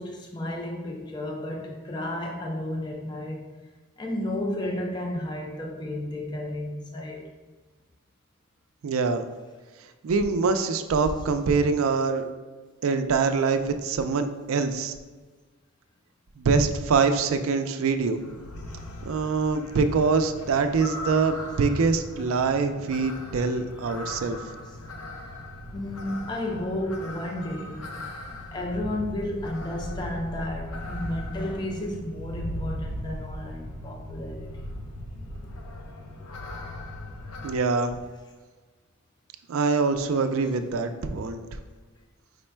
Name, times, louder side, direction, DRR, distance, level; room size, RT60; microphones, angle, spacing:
voice 1, 0.0-3.5 4.0-7.2 25.7-27.9 28.5-34.7, left 1 dB, 20° left, 1 dB, 0.3 m, -32 dB
voice 2, 8.8-9.3 10.0-12.2 12.8-14.9 16.4-18.2 19.0-24.4 37.4-38.0 39.5-41.4, right 4 dB, 70° right, 9 dB, 0.4 m, -24 dB
sound 1, 18.2-37.5, left 1 dB, 85° left, 0.6 m, -38 dB
4.9 x 2.1 x 4.4 m, 1.4 s
head